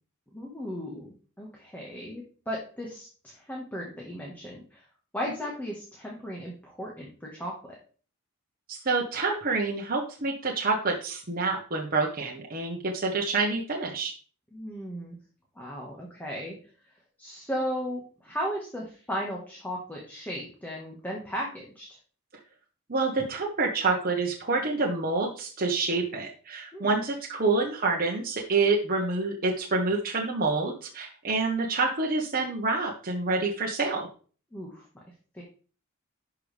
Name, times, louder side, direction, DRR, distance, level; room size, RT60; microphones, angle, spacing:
voice 1, 0.3-4.8 5.1-7.8 14.5-15.2 15.5-16.6 17.2-21.9 26.7-26.9 34.5-34.8 35.3-35.4, equal, 10° left, -2 dB, 1.5 m, -36 dB
voice 2, 8.7-14.1 22.9-34.1, right 3 dB, 40° right, -1 dB, 1.2 m, -27 dB
12.0 x 4.8 x 3.4 m, 0.40 s
head